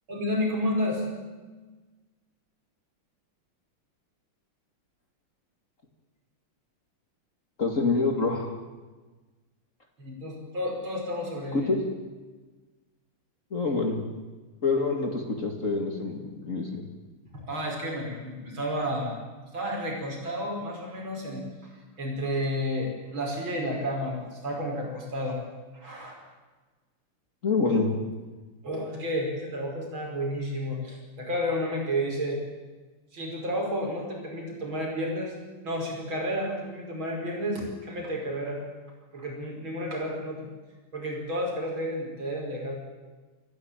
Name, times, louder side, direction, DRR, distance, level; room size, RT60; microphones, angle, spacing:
voice 1, 0.1-1.1 10.0-11.7 13.6-13.7 17.3-19.1 19.5-21.4 22.0-25.4 25.7-26.1 28.6-32.4 33.1-35.3 35.6-38.6 39.1-40.5 40.9-42.7, equal, 65° right, 0 dB, 6.2 m, -31 dB
voice 2, 7.6-8.6 11.5-11.8 13.5-14.0 14.6-16.8 27.4-27.9, left 3 dB, 35° left, 3 dB, 2.5 m, -26 dB
26.5 x 14.5 x 9.1 m, 1.3 s
omnidirectional pair, 2.4 m